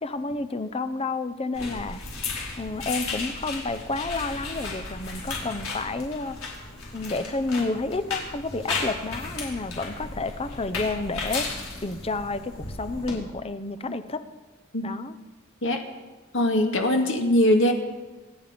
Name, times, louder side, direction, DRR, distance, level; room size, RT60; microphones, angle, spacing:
voice 1, 0.0-2.0 2.6-6.4 6.9-14.2 14.8-15.2, left 3 dB, 30° left, 11 dB, 0.8 m, -30 dB
sound 1, 1.5-13.1, left 3 dB, 90° left, 4.7 m, -35 dB
voice 2, 16.3-17.7, left 1 dB, 65° left, 3 dB, 2.2 m, -21 dB
26.5 x 10.0 x 5.2 m, 1.2 s
head